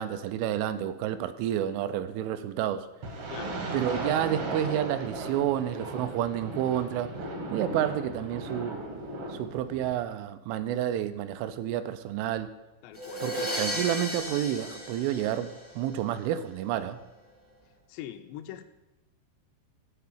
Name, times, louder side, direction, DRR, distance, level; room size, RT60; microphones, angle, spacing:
voice 1, 0.0-2.9 3.7-7.1 7.5-8.8 9.3-12.5 13.2-17.0, right 11 dB, 85° right, 11 dB, 3.2 m, -30 dB
sound 1, 3.0-10.0, right 2 dB, 65° right, 1.4 m, -37 dB
voice 2, 3.3-3.7 12.8-13.3 17.9-18.6, left 12 dB, 85° left, 6 dB, 2.7 m, -42 dB
sound 2, 12.9-15.9, equal, 30° right, 0.3 m, -34 dB
12.5 x 4.7 x 8.6 m, 1.0 s
omnidirectional pair, 5.4 m